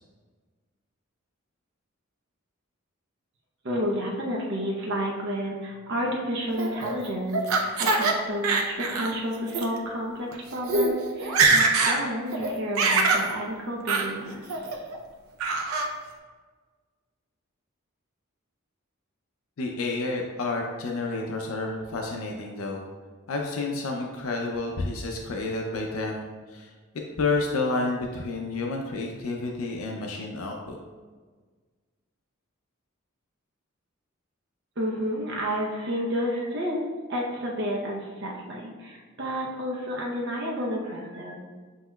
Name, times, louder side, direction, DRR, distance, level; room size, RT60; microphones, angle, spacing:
voice 1, 3.6-14.4 34.8-36.8 37.1-41.3, equal, 55° right, -2 dB, 0.7 m, -30 dB
Laughter, 6.6-8.1 8.4-9.1 9.5-9.6 10.3-10.4 10.6-10.9 11.2-12.0 12.3-13.3 13.9-14.1 14.5-15.0 15.4-15.9, right 3 dB, 90° right, 0.6 m, -23 dB
voice 2, 19.6-22.9 23.3-26.7 27.2-30.8, left 3 dB, 80° left, 1 dB, 0.5 m, -30 dB
7.6 x 2.9 x 2.2 m, 1.4 s
head